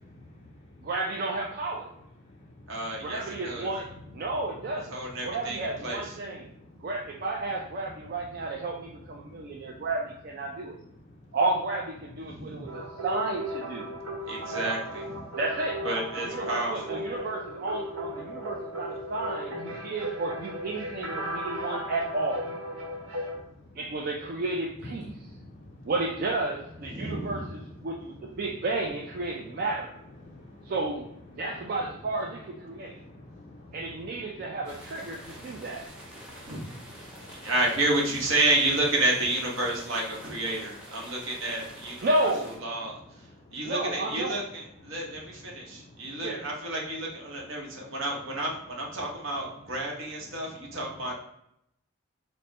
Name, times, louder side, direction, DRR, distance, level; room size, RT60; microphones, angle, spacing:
voice 1, 0.1-0.7 1.2-1.4 2.2-3.2 4.1-4.3 5.3-5.4 6.4-6.9 7.8-7.9 9.2-9.9 11.0-11.4 12.4-13.0 13.8-14.3 15.3-15.4 18.3-18.6 19.8-19.9 22.8-23.8 24.8-25.9 26.9-27.1 27.8-28.3 29.3-29.6 30.2-30.7 31.3-31.7 32.6-34.6 35.1-37.5 43.3-43.6 44.9-45.0 45.5-46.1, left 1 dB, 35° left, 0.4 m, -50 dB
voice 2, 0.8-1.9 3.0-5.0 5.2-6.5 6.8-10.8 11.3-13.9 15.4-15.8 16.2-22.5 23.8-25.1 25.9-29.9 30.7-31.1 31.3-33.0 33.7-35.8 42.0-42.5 43.6-44.3 46.2-46.4, right 2 dB, 45° right, 0.4 m, -32 dB
voice 3, 2.7-3.7 4.9-6.2 12.2-12.7 14.2-15.2 15.8-17.0 26.8-27.5 36.5-36.6 37.3-42.3 42.6-51.1, right 1 dB, 65° right, 1.0 m, -30 dB
sound 1, 12.6-23.4, equal, 90° right, 1.0 m, -36 dB
sound 2, 34.6-42.6, equal, 5° right, 0.8 m, -47 dB
4.2 x 2.1 x 3.2 m
head